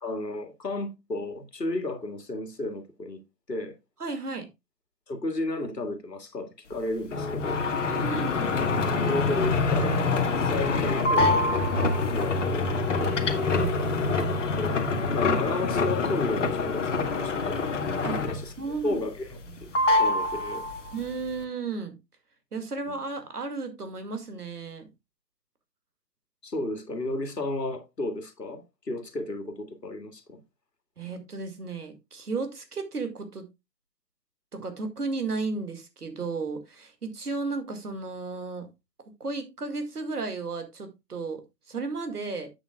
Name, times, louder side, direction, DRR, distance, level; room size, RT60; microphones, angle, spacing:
voice 1, 0.0-3.2 3.5-3.8 5.1-7.6 8.8-12.7 14.6-14.8 15.1-17.7 18.2-18.5 18.8-19.4 20.0-20.6 22.9-23.0 26.4-30.4, left 2 dB, 75° left, 2.0 m, -33 dB
voice 2, 4.0-4.5 7.9-8.5 12.5-12.7 13.0-13.8 18.0-18.3 18.6-19.0 19.5-19.8 20.9-22.0 22.5-24.8 31.0-33.5 34.5-38.7 39.2-41.4 41.7-42.5, right 3 dB, 65° right, 2.2 m, -34 dB
sound 1, 7.1-18.6 18.9-19.5 19.7-21.0, left 3 dB, 45° left, 1.4 m, -25 dB
10.5 x 8.1 x 2.3 m
figure-of-eight pair, 140°, 50 cm